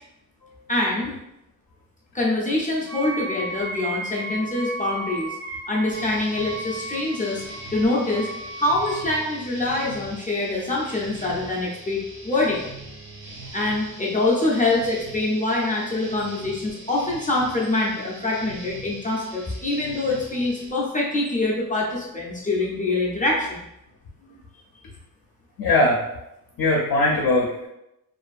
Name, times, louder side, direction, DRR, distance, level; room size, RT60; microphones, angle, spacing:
voice 1, 0.7-1.1 2.1-5.4 5.7-7.4 7.7-8.3 8.6-12.7 13.5-23.7, left 2 dB, 25° left, -4 dB, 0.4 m, -24 dB
Wind instrument woodwind instrument, 2.9-9.2, right 2 dB, 45° right, 0.4 m, -34 dB
sound 1, 5.9-20.7, right 2 dB, 65° right, 0.8 m, -41 dB
voice 2, 25.6-26.0 26.6-27.7, left 2 dB, 85° left, -1 dB, 0.5 m, -20 dB
2.5 x 2.5 x 2.3 m, 0.87 s
wide cardioid pair, 155°, 35 cm